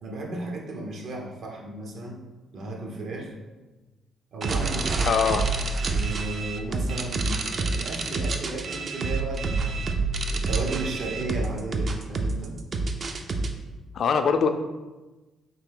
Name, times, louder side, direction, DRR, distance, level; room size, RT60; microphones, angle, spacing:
voice 1, 0.0-2.2 2.5-3.4 4.3-5.0 5.8-9.9 10.3-12.6, right 2 dB, 65° right, 1 dB, 0.8 m, -34 dB
sound 1, 4.4-13.5, right 3 dB, 45° right, 0.4 m, -28 dB
voice 2, 5.0-5.5 13.9-14.5, left 6 dB, 60° left, 7 dB, 0.3 m, -22 dB
3.7 x 2.7 x 3.7 m, 1.2 s
cardioid pair, 90°, 0 cm